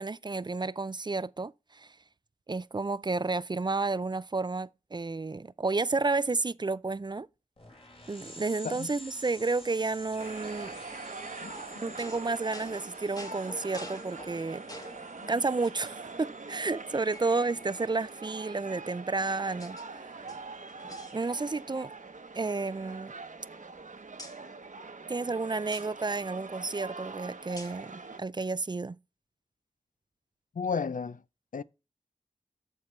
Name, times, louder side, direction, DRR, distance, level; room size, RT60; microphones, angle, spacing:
voice 1, 0.0-1.9 2.5-7.3 8.1-10.8 11.8-14.6 15.3-20.3 21.1-21.9 22.3-23.1 25.0-29.0, right 3 dB, 35° right, 0.3 m, -31 dB
sound 1, 7.6-17.7, equal, 45° left, 2.8 m, -51 dB
sound 2, 10.2-28.2, right 4 dB, 75° right, 0.9 m, -44 dB
sound 3, 11.5-15.1 15.6-16.3 16.7-16.8 17.1-18.2 18.9-19.9 20.2-21.7 22.0-22.2 22.5-23.8 24.2-24.4 25.7-25.9 27.6-27.9, left 1 dB, 30° left, 1.3 m, -49 dB
voice 2, 30.6-31.2 31.5-31.6, left 5 dB, 80° left, 0.4 m, -33 dB
13.0 x 4.5 x 3.1 m
wide cardioid pair, 50°, 13 cm